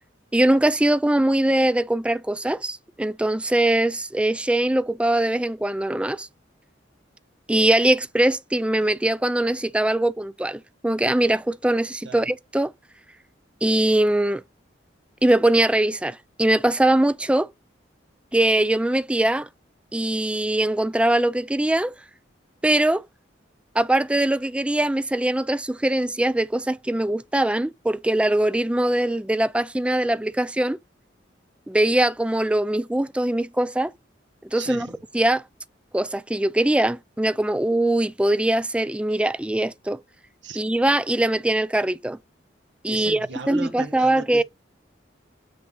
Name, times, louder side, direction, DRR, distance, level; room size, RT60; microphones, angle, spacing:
voice 1, 0.3-6.3 7.5-12.7 13.6-14.4 15.2-17.5 18.3-19.5 19.9-21.9 22.6-23.0 23.7-30.8 31.7-33.9 34.5-34.9 35.1-35.4 35.9-40.0 40.6-42.2 42.8-44.4, right 1 dB, 5° right, 0.3 m, -22 dB
voice 2, 34.5-35.0 40.4-40.6 42.9-44.4, right 4 dB, 75° right, 1.4 m, -36 dB
8.5 x 3.7 x 5.5 m
head